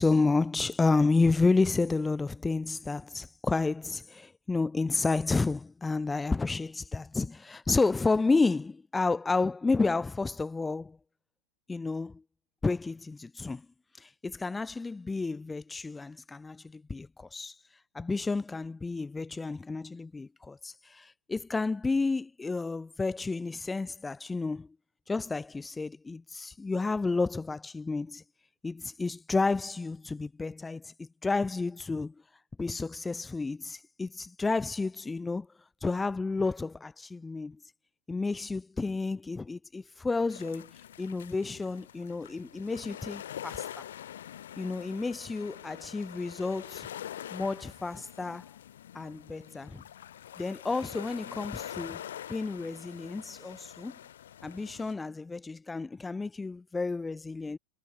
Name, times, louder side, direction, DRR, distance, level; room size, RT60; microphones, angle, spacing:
voice 1, 0.0-11.0 11.7-12.2 12.6-13.7 14.0-17.6 17.9-24.7 25.1-28.2 28.6-32.1 32.6-35.5 35.8-37.6 38.1-40.7 41.0-43.9 44.6-46.9 47.3-48.5 48.9-49.8 50.4-52.0 52.3-54.0 54.4-57.6, left 3 dB, 10° left, 0.5 m, -31 dB
sound 1, 40.3-54.9, left 11 dB, 60° left, 4.2 m, -45 dB
figure-of-eight pair, 90°, 0 cm